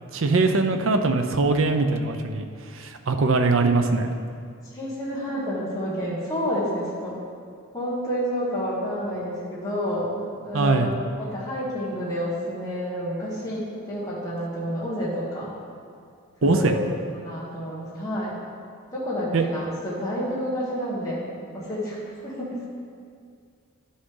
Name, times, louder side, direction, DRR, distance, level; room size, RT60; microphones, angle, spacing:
voice 1, 0.1-2.4 2.8-4.1 10.5-10.9 16.4-16.7 19.3-19.4, right 3 dB, 60° right, 6 dB, 0.6 m, -21 dB
voice 2, 4.7-7.2 7.7-15.5 16.4-16.8 17.2-18.4 18.9-21.2 21.5-22.7, equal, 15° left, -8 dB, 1.6 m, -29 dB
11.0 x 6.3 x 3.8 m, 2.2 s
head